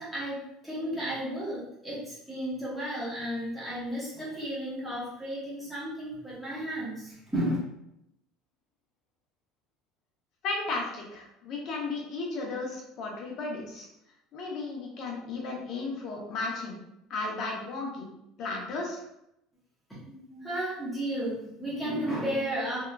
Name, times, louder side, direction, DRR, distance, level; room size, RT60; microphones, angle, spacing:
voice 1, 0.0-7.6 20.0-22.8, right 1 dB, ahead, -9 dB, 0.8 m, -33 dB
voice 2, 10.4-13.9 14.3-16.8 17.1-18.1 18.4-19.0, left 3 dB, 45° left, -1 dB, 0.6 m, -34 dB
2.8 x 2.3 x 2.2 m, 0.81 s
cardioid pair, 160°, 0 cm